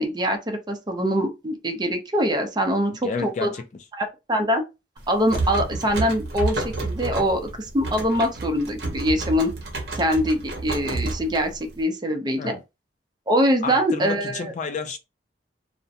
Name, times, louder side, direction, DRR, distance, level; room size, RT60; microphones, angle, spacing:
voice 1, 0.0-3.5 3.9-4.6 5.1-9.5 9.9-12.5 13.3-14.5, equal, 25° right, 0.5 m, -23 dB
voice 2, 3.0-3.6 12.4-12.6 13.6-15.0, left 4 dB, 45° left, 0.3 m, -30 dB
sound 1, 5.0-11.8, right 2 dB, 65° right, 0.7 m, -30 dB
2.4 x 2.1 x 2.6 m
head